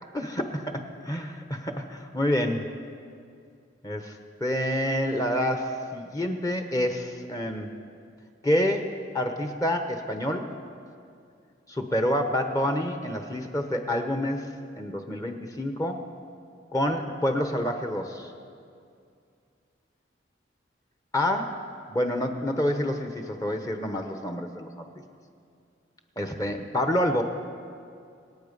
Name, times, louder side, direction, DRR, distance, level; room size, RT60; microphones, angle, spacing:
voice 1, 0.1-2.6 3.8-7.7 8.4-8.9 9.1-10.5 11.7-14.5 14.8-16.0 16.7-18.3 21.1-24.7 26.2-27.2, left 1 dB, 20° left, 5 dB, 0.9 m, -28 dB
26.5 x 8.9 x 5.3 m, 2.4 s
head